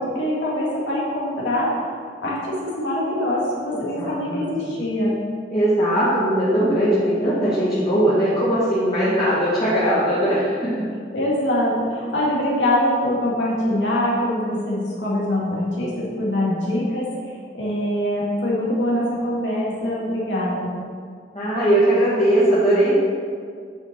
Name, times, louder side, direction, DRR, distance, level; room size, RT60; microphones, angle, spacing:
voice 1, 0.0-1.7 2.2-5.1 11.1-20.7, left 1 dB, 85° left, -6 dB, 2.0 m, -23 dB
voice 2, 3.8-4.7 5.5-10.7 21.3-22.9, right 1 dB, 30° left, -11 dB, 2.1 m, -20 dB
9.8 x 5.5 x 4.4 m, 2.1 s
head